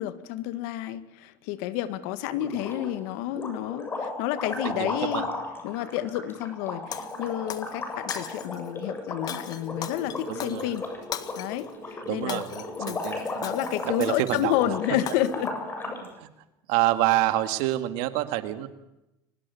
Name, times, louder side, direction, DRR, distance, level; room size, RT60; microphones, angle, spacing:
voice 1, 0.0-5.3 5.6-10.9 11.4-12.4 12.8-13.0 13.4-15.5, left 13 dB, 80° left, 13 dB, 1.7 m, -30 dB
sound 1, 2.4-3.0 3.3-16.1, left 3 dB, 25° left, 7.6 m, -35 dB
voice 2, 4.6-5.3 9.3-9.4 10.3-10.8 12.0-13.2 13.8-14.5 16.0-16.3 16.7-18.7, right 15 dB, 80° right, 10 dB, 2.2 m, -27 dB
Shatter, 6.9-7.7 8.1-8.7 9.3-11.7 12.1-14.6 15.1-15.5, left 10 dB, 50° left, 1.8 m, -39 dB
23.5 x 20.0 x 7.1 m, 0.90 s
supercardioid pair, 100°, 9 cm